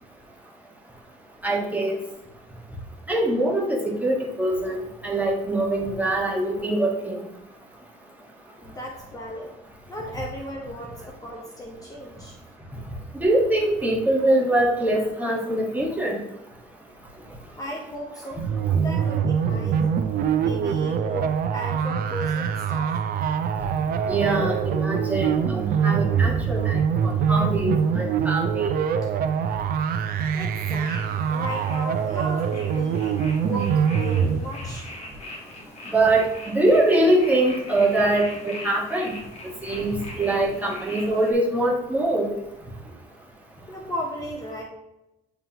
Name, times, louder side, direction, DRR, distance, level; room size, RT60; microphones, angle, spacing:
voice 1, 1.4-2.0 3.1-7.2 13.2-16.2 24.1-26.8 27.0-28.7 35.9-39.1 39.6-42.3, right 1 dB, 10° right, -2 dB, 1.6 m, -23 dB
voice 2, 8.6-9.5 9.9-12.4 17.6-19.8 20.4-23.0 30.3-33.0 33.4-34.8 43.7-44.6, equal, 20° left, -1 dB, 1.0 m, -35 dB
sound 1, 18.4-34.4, right 7 dB, 60° right, 0.6 m, -24 dB
sound 2, 30.8-41.3, left 1 dB, 40° left, 1.5 m, -41 dB
9.1 x 3.6 x 3.0 m, 0.94 s
cardioid pair, 110°, 17 cm